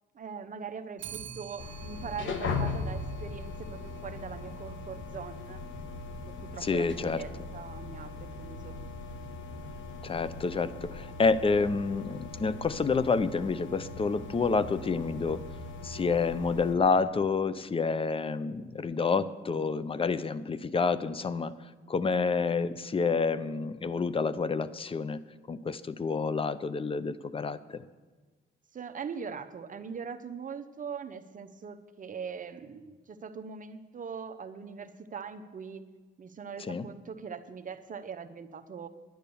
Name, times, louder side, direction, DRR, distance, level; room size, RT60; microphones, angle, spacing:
voice 1, 0.1-5.6 6.3-8.8 28.7-35.8 36.2-38.9, right 6 dB, 40° right, 8 dB, 0.8 m, -41 dB
Clock, 1.0-10.4, right 9 dB, 70° right, 1.6 m, -52 dB
sound 1, 1.6-16.8, left 3 dB, 75° left, 1.4 m, -39 dB
voice 2, 6.6-7.2 10.0-15.4 15.8-21.5 21.9-25.2 25.5-27.8 36.6-36.9, left 4 dB, 25° left, 16 dB, 0.6 m, -28 dB
10.5 x 10.0 x 7.0 m, 1.3 s
cardioid pair, 90°, 20 cm